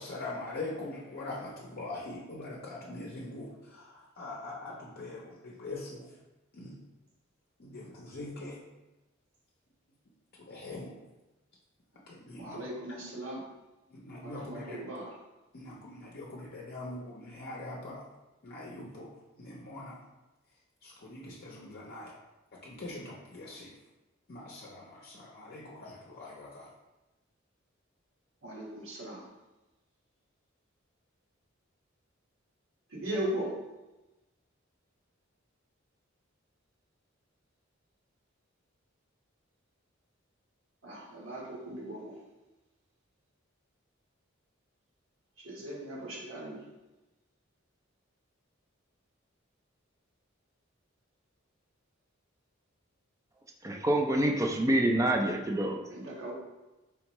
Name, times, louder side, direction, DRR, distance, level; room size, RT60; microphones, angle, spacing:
voice 1, 0.0-6.1 6.5-6.8 7.6-8.6 10.5-10.9 12.1-12.7 13.9-14.8 15.5-18.0 18.4-20.0 20.8-22.1 22.6-23.7 24.3-26.7, left 2 dB, 50° left, -4 dB, 0.6 m, -42 dB
voice 2, 12.4-13.4 14.2-15.1 28.4-29.2 32.9-33.5 40.8-42.2 45.4-46.6 55.9-56.3, right 1 dB, 75° right, -4 dB, 1.4 m, -38 dB
voice 3, 53.6-55.8, right 1 dB, 15° right, 2 dB, 0.4 m, -26 dB
4.4 x 3.5 x 3.0 m, 1.0 s
head